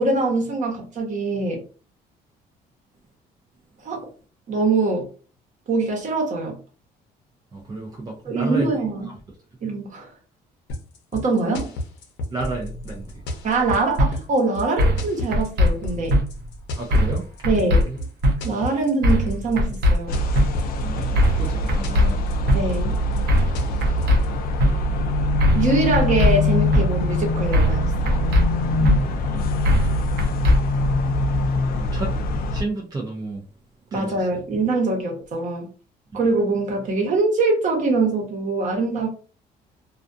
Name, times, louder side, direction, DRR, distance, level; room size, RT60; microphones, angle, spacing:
voice 1, 0.0-1.6 3.8-4.1 4.5-5.1 5.7-6.6 8.2-9.1 9.6-10.1 11.1-11.7 13.4-16.2 17.4-17.8 18.4-20.2 22.5-23.0 25.5-28.3 33.9-35.7 36.1-39.1, right 3 dB, 50° right, 1.0 m, -23 dB
voice 2, 7.5-8.8 9.1-9.2 12.3-13.2 16.8-17.3 17.5-18.0 20.8-22.4 24.0-24.2 28.7-29.5 31.7-32.1 32.5-33.4 33.9-34.4, right 2 dB, 25° right, 0.5 m, -32 dB
sound 1, 10.7-24.3, left 1 dB, 90° left, 0.7 m, -32 dB
sound 2, 14.0-14.1 14.8-15.0 15.3-15.7 16.1-16.2 16.9-17.2 17.4-17.8 18.2-18.3 19.0-19.3 19.6-19.9 20.3-20.5 21.2-21.4 21.7-22.1 22.5-22.6 23.3-23.5 23.8-24.2 24.6-24.7 25.4-25.7 25.9-26.3 26.7-26.8 27.5-27.8 28.1-28.4 28.8-29.0 29.6-29.9 30.2-30.6, left 1 dB, 80° right, 0.7 m, -18 dB
sound 3, 20.1-32.6, left 1 dB, 60° left, 0.4 m, -23 dB
2.4 x 2.3 x 2.5 m
cardioid pair, 110°, 17 cm